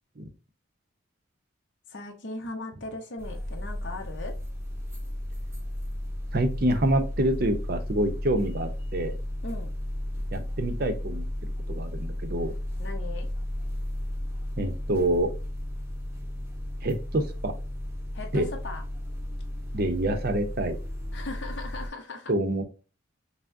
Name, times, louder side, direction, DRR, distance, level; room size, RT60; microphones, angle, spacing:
voice 1, 1.9-4.3 9.4-9.7 12.8-13.3 18.1-18.8 21.1-22.3, left 2 dB, 55° left, 2 dB, 0.7 m, -38 dB
sound 1, 3.2-21.9, left 1 dB, 10° right, 0.7 m, -34 dB
voice 2, 6.3-9.1 10.3-11.2 11.7-12.5 14.6-15.3 16.8-17.5 18.3-18.5 19.7-20.8 22.3-22.6, right 1 dB, 45° right, 7 dB, 0.6 m, -26 dB
5.7 x 2.1 x 2.5 m, 0.33 s
head